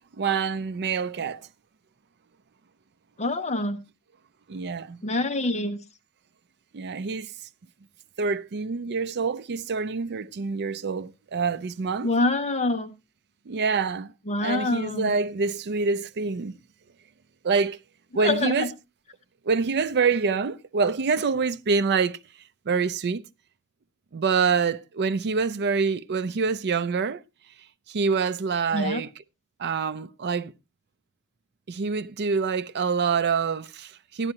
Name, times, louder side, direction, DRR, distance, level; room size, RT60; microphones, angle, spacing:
voice 1, 0.2-1.4 4.5-5.0 6.7-7.3 8.2-12.1 13.5-14.1 14.4-16.5 17.4-17.8 18.1-18.7 19.5-22.2 22.7-23.3 24.1-27.2 27.9-29.1 29.6-30.5 31.7-34.3, right 5 dB, 50° right, 0.5 m, -26 dB
voice 2, 3.2-3.8 5.0-5.8 12.0-12.9 14.3-15.1 18.2-18.7 28.7-29.0, left 2 dB, 30° left, 0.7 m, -26 dB
13.5 x 10.5 x 2.8 m
head